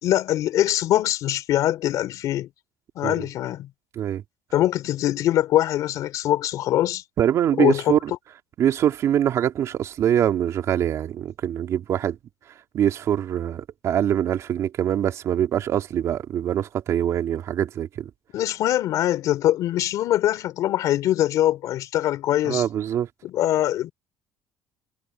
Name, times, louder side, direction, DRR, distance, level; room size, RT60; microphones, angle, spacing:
voice 1, 0.0-2.5 2.9-3.7 4.5-7.0 7.6-7.9 18.3-22.6 23.2-23.9, left 13 dB, 65° left, 2.8 m, -23 dB
voice 2, 7.2-8.1 8.6-12.2 12.7-18.1 22.4-23.1, right 10 dB, 55° right, 2.9 m, -23 dB
cardioid pair, 115°, 6 cm